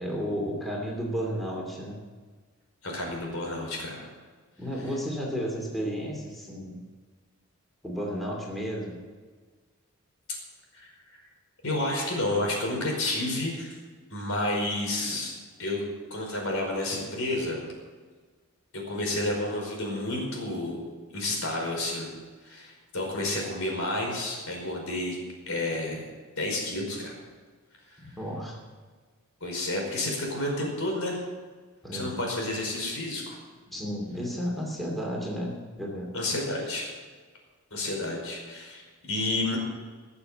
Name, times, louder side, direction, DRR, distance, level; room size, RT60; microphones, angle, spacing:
voice 1, 0.0-2.0 4.6-6.8 7.8-8.9 28.0-28.6 31.8-32.2 33.7-35.5 35.8-36.1, equal, ahead, -2 dB, 2.7 m, -32 dB
voice 2, 2.8-4.1 10.7-10.9 11.6-13.8 14.1-15.8 16.1-17.6 18.7-20.8 21.1-22.1 22.4-25.2 25.5-26.1 26.4-27.2 29.4-31.2 31.9-33.4 36.1-36.9 37.7-39.6, left 1 dB, 65° left, 0 dB, 5.0 m, -30 dB
19.0 x 7.1 x 7.9 m, 1.4 s
head